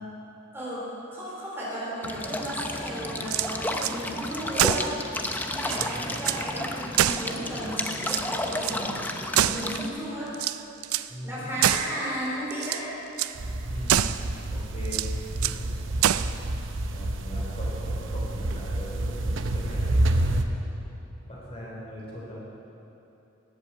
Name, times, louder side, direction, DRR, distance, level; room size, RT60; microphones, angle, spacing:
voice 1, 0.5-4.9 5.5-9.0 9.3-10.3 11.2-12.8, equal, 10° right, -8 dB, 3.8 m, -34 dB
sound 1, 2.0-9.9, left 1 dB, 10° left, 0.6 m, -32 dB
sound 2, 3.2-4.0 4.6-5.0 5.4-5.5 5.6-6.5 7.0-7.7 8.0-8.8 9.3-9.9 10.3-11.1 11.6-12.0 12.5-12.9 13.2-13.4 13.9-14.3 14.9-15.6 16.0-16.4, right 11 dB, 85° right, 0.4 m, -26 dB
voice 2, 5.8-6.1 11.1-11.6 13.6-14.2 14.5-15.1 15.4-16.2 16.9-20.4 21.3-22.4, equal, 25° left, -6 dB, 3.7 m, -40 dB
sound 3, 13.4-20.5, right 1 dB, 60° right, 0.8 m, -28 dB
19.0 x 8.2 x 7.6 m, 3.0 s
head